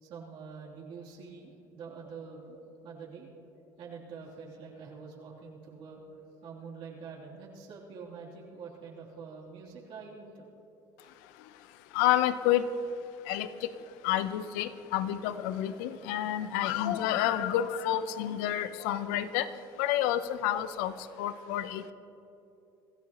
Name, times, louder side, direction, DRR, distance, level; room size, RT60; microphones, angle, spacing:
voice 1, 0.0-3.5 3.8-10.5 11.0-11.1 16.2-16.5, right 5 dB, 65° right, -5 dB, 3.1 m, -46 dB
voice 2, 11.9-12.7 13.3-13.5 14.0-19.5 19.8-20.9 21.2-21.9, left 12 dB, 85° left, 13 dB, 0.7 m, -29 dB
26.0 x 14.0 x 3.0 m, 2.9 s
supercardioid pair, 90°, 10 cm